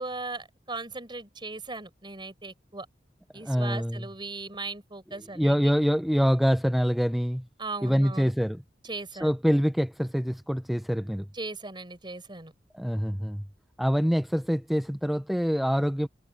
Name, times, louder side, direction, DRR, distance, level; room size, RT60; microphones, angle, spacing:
voice 1, 0.0-2.9 3.3-5.7 7.6-8.3 8.8-9.4 11.3-12.5, right 3 dB, 25° right, 4.4 m, -38 dB
voice 2, 3.3-4.1 5.3-7.5 7.8-8.6 9.2-11.3 12.7-13.5 13.8-16.1, equal, ahead, 0.4 m, -25 dB
head